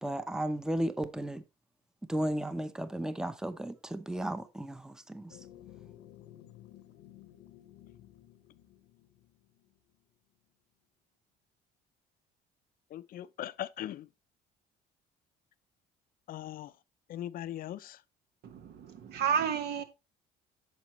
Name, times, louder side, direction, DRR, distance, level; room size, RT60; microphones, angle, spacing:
voice 1, 0.0-1.4 2.1-5.4, right 1 dB, 5° right, 0.7 m, -34 dB
sound 1, 5.3-9.9, left 12 dB, 85° left, 0.9 m, -54 dB
voice 2, 12.9-14.1 16.3-16.7 17.1-18.0, left 12 dB, 60° left, 0.5 m, -39 dB
voice 3, 18.4-19.8, right 7 dB, 75° right, 1.4 m, -31 dB
9.2 x 6.3 x 3.1 m
cardioid pair, 110°, 17 cm